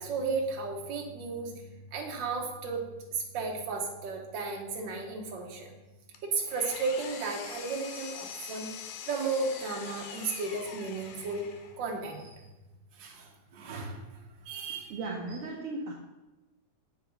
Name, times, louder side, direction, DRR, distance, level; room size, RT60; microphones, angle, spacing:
voice 1, 0.0-1.5 1.9-2.9 3.1-5.7 6.2-8.7 9.1-11.4 11.8-12.4 13.0-14.0 14.5-14.9, right 4 dB, 55° right, 1 dB, 1.4 m, -34 dB
Engine, 6.1-11.9, left 6 dB, 85° left, 2.2 m, -43 dB
voice 2, 14.7-15.9, right 3 dB, 70° right, -1 dB, 1.3 m, -37 dB
7.8 x 4.7 x 5.0 m, 1.1 s
omnidirectional pair, 3.3 m